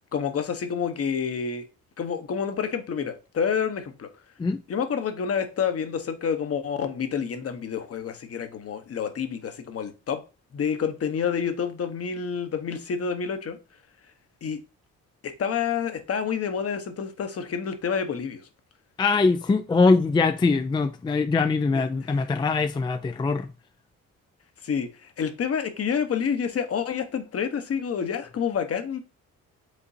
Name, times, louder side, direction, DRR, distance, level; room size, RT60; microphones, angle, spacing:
voice 1, 0.1-1.6 2.0-4.1 4.7-10.2 10.5-13.6 14.4-14.6 15.2-18.4 21.7-21.8 24.6-29.0, left 7 dB, 50° left, 1.1 m, -28 dB
voice 2, 19.0-23.5, left 4 dB, 15° left, 0.4 m, -22 dB
5.2 x 3.8 x 2.7 m
cardioid pair, 90°, 30 cm